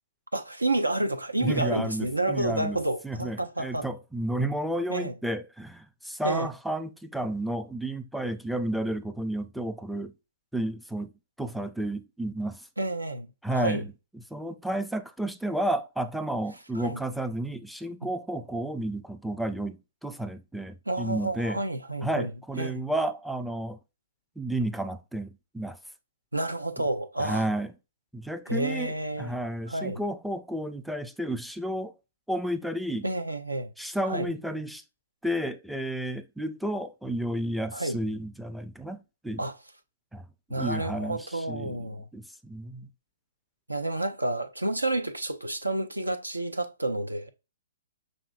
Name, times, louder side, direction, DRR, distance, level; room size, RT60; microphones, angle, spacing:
voice 1, 0.3-3.9 4.9-5.1 6.2-6.5 12.8-13.8 16.7-17.0 18.0-18.1 20.9-22.3 22.6-22.8 26.3-27.5 28.5-29.3 29.7-30.0 33.0-33.7 34.0-34.3 37.7-38.0 39.4-39.5 40.5-42.1 43.7-47.3, right 2 dB, 85° right, 0.7 m, -30 dB
voice 2, 1.4-2.8 3.0-10.1 10.5-11.1 11.4-12.6 13.4-13.9 14.3-21.6 22.0-23.8 24.4-25.8 27.2-27.7 28.1-31.9 32.3-33.1 33.8-34.8 35.2-39.4 40.1-40.2 40.5-42.9, right 1 dB, ahead, 0.4 m, -32 dB
6.1 x 2.6 x 2.4 m
figure-of-eight pair, 125°, 0 cm